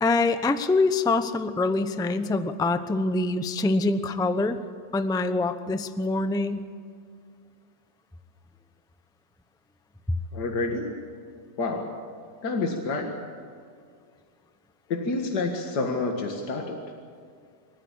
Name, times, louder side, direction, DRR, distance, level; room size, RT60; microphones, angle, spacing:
voice 1, 0.0-4.6 4.9-6.7, left 3 dB, 5° left, 10 dB, 0.5 m, -25 dB
voice 2, 10.3-11.0 11.6-12.0 12.4-13.2 14.9-16.8, left 3 dB, 70° left, 2 dB, 2.4 m, -28 dB
27.0 x 14.5 x 8.7 m, 2.2 s
omnidirectional pair, 1.9 m